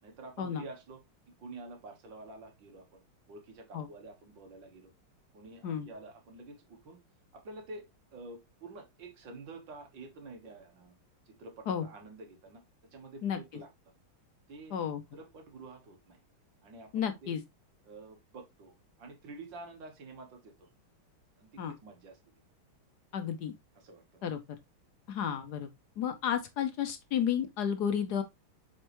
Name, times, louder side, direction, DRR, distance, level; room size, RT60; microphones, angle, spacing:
voice 1, 0.0-1.0 1.4-3.0 3.3-4.9 5.3-7.0 7.3-7.8 8.1-11.0 11.3-12.6 12.9-13.7 14.5-14.8 15.1-16.2 16.6-17.4 17.8-20.7 21.4-22.2 23.8-24.4, right 2 dB, 60° right, 2.0 m, -49 dB
voice 2, 14.7-15.0 16.9-17.4 21.6-21.7 23.1-23.5 24.2-24.4 25.1-25.7 26.0-28.2, left 8 dB, 65° left, 1.0 m, -32 dB
7.6 x 4.3 x 3.0 m
omnidirectional pair, 2.3 m